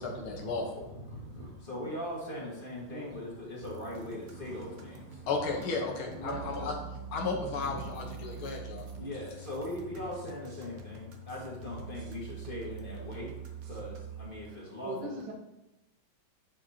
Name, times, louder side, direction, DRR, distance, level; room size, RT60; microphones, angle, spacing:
voice 1, 0.0-0.8 5.3-6.7 7.1-8.9, left 4 dB, 90° left, 1 dB, 2.0 m, -34 dB
voice 2, 0.8-5.7 7.5-15.2, left 1 dB, 25° left, -4 dB, 1.8 m, -41 dB
sound 1, 3.6-14.3, right 5 dB, 60° right, 1.0 m, -45 dB
voice 3, 6.0-6.7 9.9-10.1 14.5-15.3, right 1 dB, 85° right, -1 dB, 2.2 m, -41 dB
9.8 x 5.2 x 2.8 m, 0.94 s
omnidirectional pair, 2.2 m